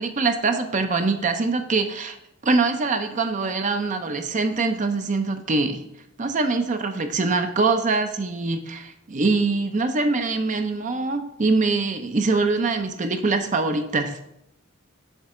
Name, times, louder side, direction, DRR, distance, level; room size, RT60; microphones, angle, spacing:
voice 1, 0.0-2.2 2.4-5.9 6.2-14.2, right 3 dB, 40° right, 7 dB, 0.6 m, -23 dB
7.3 x 3.3 x 4.9 m, 0.78 s
head